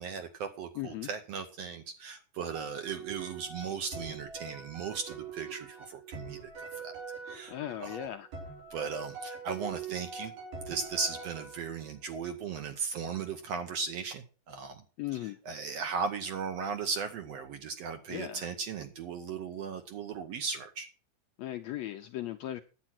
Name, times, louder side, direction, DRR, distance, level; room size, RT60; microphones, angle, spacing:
voice 1, 0.0-6.4 6.8-7.0 7.3-7.5 7.8-8.0 8.7-10.3 10.7-14.8 15.5-20.9, right 5 dB, 70° right, 1.7 m, -37 dB
voice 2, 0.8-1.1 7.5-8.3 15.0-15.4 18.1-18.5 21.4-22.6, left 13 dB, 80° left, 1.6 m, -37 dB
sound 1, 2.5-11.8, right 5 dB, 85° right, 5.5 m, -43 dB
10.0 x 8.9 x 6.0 m
omnidirectional pair, 3.8 m